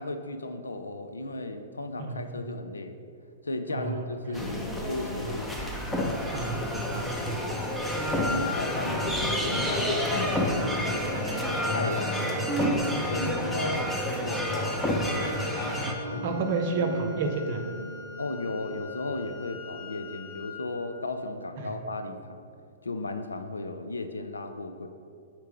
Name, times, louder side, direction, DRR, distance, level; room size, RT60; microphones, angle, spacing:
voice 1, 0.0-3.0 3.4-5.6 6.9-7.1 8.1-11.1 11.7-12.4 13.0-13.9 14.2-14.7 15.9-16.5 18.2-22.5 22.8-24.9, left 2 dB, 85° left, 8 dB, 0.4 m, -35 dB
voice 2, 2.0-2.4 3.7-4.4 6.3-7.4 15.8-17.6 21.6-21.7, right 3 dB, 50° right, 4 dB, 0.7 m, -31 dB
sound 1, 4.3-15.9, left 1 dB, 5° left, 0.6 m, -29 dB
sound 2, 10.5-19.0, right 2 dB, 80° right, 0.4 m, -43 dB
Wind instrument woodwind instrument, 14.3-20.9, left 4 dB, 45° left, 1.3 m, -44 dB
4.6 x 4.5 x 4.9 m, 2.4 s
hypercardioid pair, 115°, 0 cm